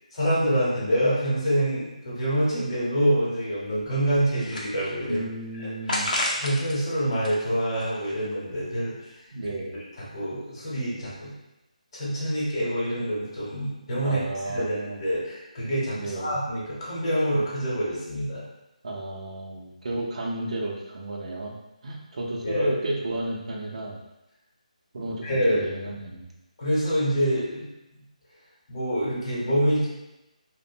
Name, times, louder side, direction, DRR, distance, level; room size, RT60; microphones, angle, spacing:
voice 1, 0.1-5.2 5.6-5.7 6.4-9.1 9.4-9.5 10.1-11.3 11.9-14.2 14.5-18.4 22.4-22.7 25.0-25.7 26.6-27.7 28.7-29.9, equal, 35° left, -7 dB, 0.9 m, -26 dB
sound 1, 4.4-5.2 5.9-6.8 7.1-8.3, left 1 dB, 80° left, 0.6 m, -31 dB
voice 2, 5.1-6.1 9.3-9.8 14.0-15.0 15.9-16.3 18.8-21.5 21.8-24.0 24.9-26.3, right 1 dB, 55° right, -1 dB, 0.6 m, -32 dB
2.5 x 2.1 x 2.6 m, 0.94 s
figure-of-eight pair, 165°, 4 cm